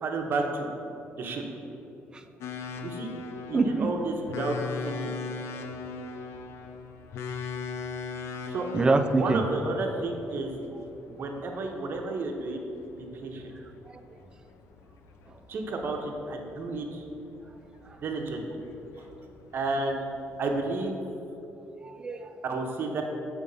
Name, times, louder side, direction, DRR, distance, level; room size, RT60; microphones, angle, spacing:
voice 1, 0.0-0.7 1.2-1.4 2.8-3.1 3.5-4.6 4.8-5.1 8.5-8.7 9.2-10.5 11.1-12.6 13.0-13.5 15.5-17.0 18.0-18.6 19.5-20.1 20.4-21.0 22.4-23.0, right 3 dB, 50° right, 2 dB, 0.8 m, -31 dB
sound 1, 2.4-20.9, left 4 dB, 75° left, 0.4 m, -40 dB
voice 2, 3.5-3.9 8.7-9.4 13.9-14.0 15.3-15.4 17.8-18.0 21.8-22.4, right 3 dB, 20° right, 7 dB, 0.3 m, -26 dB
7.5 x 3.5 x 5.4 m, 2.9 s
cardioid pair, 135°, 5 cm